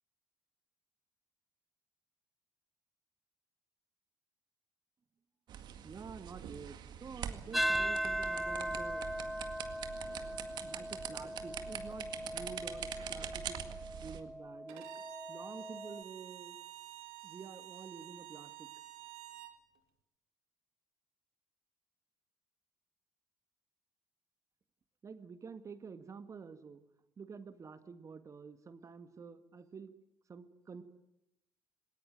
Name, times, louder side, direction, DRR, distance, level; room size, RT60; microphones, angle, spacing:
sound 1, 5.5-14.2, right 9 dB, 60° right, 2.0 m, -44 dB
voice 1, 5.8-9.3 10.6-14.9 15.3-16.6 17.2-18.7 25.0-26.8 27.2-29.9 30.3-30.8, right 5 dB, 40° right, 10 dB, 1.8 m, -49 dB
sound 2, 7.5-16.0, equal, ahead, 0.8 m, -39 dB
Bowed string instrument, 14.7-19.6, right 16 dB, 75° right, 1.9 m, -50 dB
19.5 x 19.0 x 9.2 m, 0.83 s
hypercardioid pair, 55°, 9 cm